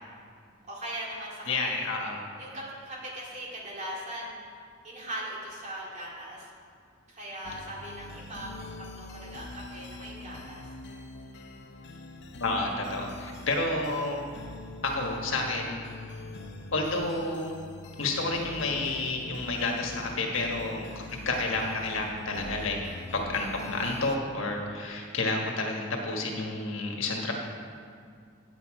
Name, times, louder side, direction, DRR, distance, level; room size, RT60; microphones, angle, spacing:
voice 1, 0.7-1.9 2.4-6.5 7.1-10.6 16.1-16.2, right 1 dB, 35° right, -4 dB, 2.4 m, -40 dB
voice 2, 1.5-2.2 12.4-14.2 14.8-15.8 16.7-17.5 18.0-22.8 23.1-27.3, left 2 dB, 80° left, 1 dB, 1.4 m, -30 dB
sound 1, 7.4-24.2, left 2 dB, 60° left, 0.7 m, -44 dB
9.5 x 8.1 x 4.8 m, 2.2 s
head